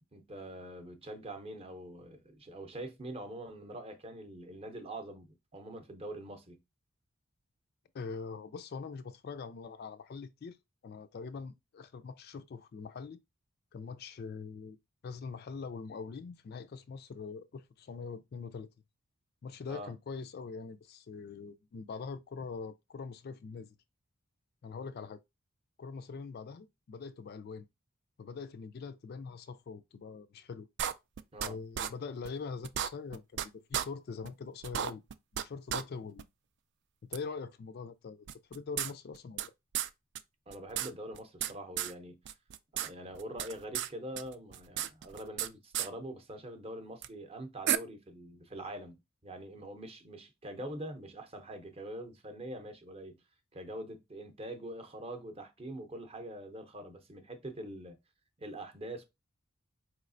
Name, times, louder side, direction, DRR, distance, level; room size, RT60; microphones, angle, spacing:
voice 1, 0.1-6.6 19.7-19.9 31.3-31.6 40.5-42.2 42.7-53.2 53.5-58.0 58.4-59.0, right 1 dB, 30° right, 0.7 m, -44 dB
voice 2, 7.9-10.6 10.8-13.2 13.7-14.8 15.0-18.7 19.4-23.8 24.6-25.2 25.8-27.7 28.2-30.7 31.4-35.0 35.3-36.2 37.0-39.5, left 5 dB, 50° left, 0.3 m, -43 dB
sound 1, 30.8-31.5 31.8-31.9 32.3-32.4 32.6-33.5 33.7-33.9 34.3-34.4 34.6-35.4 35.7-35.8 36.2-36.3 37.1-37.2 38.3-39.5 39.7-39.9 40.2-40.3 40.5-41.5 41.8-41.9 42.3-42.9 43.1-43.9 44.2-45.5 45.7-45.9 47.0-47.1 47.7-47.8, right 10 dB, 55° right, 0.3 m, -33 dB
4.8 x 3.1 x 2.5 m
head